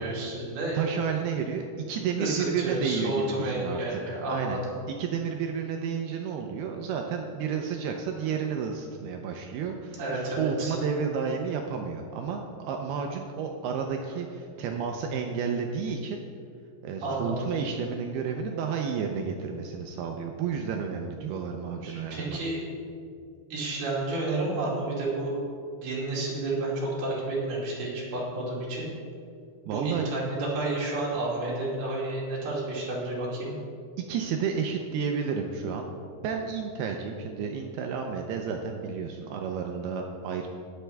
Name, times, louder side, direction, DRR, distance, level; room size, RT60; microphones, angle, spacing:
voice 1, 0.0-0.8 2.2-4.6 10.0-10.8 17.0-17.5 21.8-22.6 23.5-25.4 25.8-28.9 29.7-33.5, right 2 dB, 60° right, -5 dB, 4.2 m, -31 dB
voice 2, 0.7-4.6 5.0-16.2 16.8-22.4 29.7-30.1 34.1-35.9 36.2-40.5, right 6 dB, 80° right, 3 dB, 2.4 m, -31 dB
21.0 x 7.4 x 3.4 m, 2.4 s
omnidirectional pair, 5.1 m